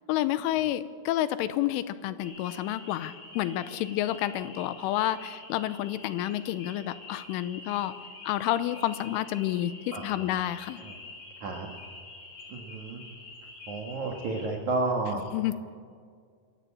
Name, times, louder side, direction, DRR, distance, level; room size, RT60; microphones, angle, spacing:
voice 1, 0.1-7.9 8.2-10.8 15.3-15.5, left 13 dB, 85° left, 13 dB, 3.3 m, -29 dB
sound 1, 2.2-14.5, left 3 dB, 45° left, 5.7 m, -47 dB
voice 2, 9.9-10.5 10.8-10.9 11.4-11.7 12.5-13.0 13.7-15.2, right 2 dB, 60° right, 1 dB, 2.1 m, -32 dB
27.0 x 13.5 x 8.6 m, 2.1 s
omnidirectional pair, 5.7 m